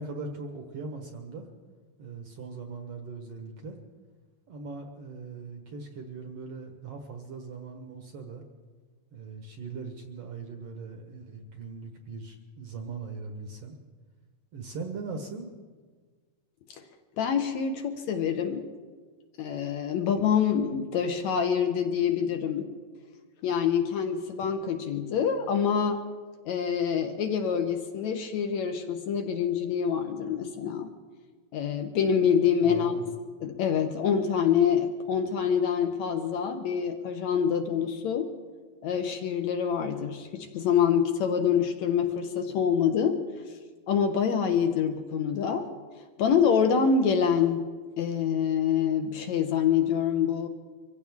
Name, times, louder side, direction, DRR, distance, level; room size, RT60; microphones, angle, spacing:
voice 1, 0.0-1.5 2.0-3.8 4.5-8.5 9.1-13.8 14.5-15.5 32.6-33.1, right 4 dB, 60° right, 4 dB, 1.8 m, -40 dB
voice 2, 17.2-18.6 19.4-22.7 23.4-26.0 26.5-30.9 31.5-32.9 33.4-38.3 38.8-43.2 43.9-45.7 46.2-47.7 48.0-50.5, left 7 dB, 70° left, 6 dB, 1.9 m, -26 dB
24.5 x 15.5 x 3.6 m, 1.5 s
omnidirectional pair, 4.0 m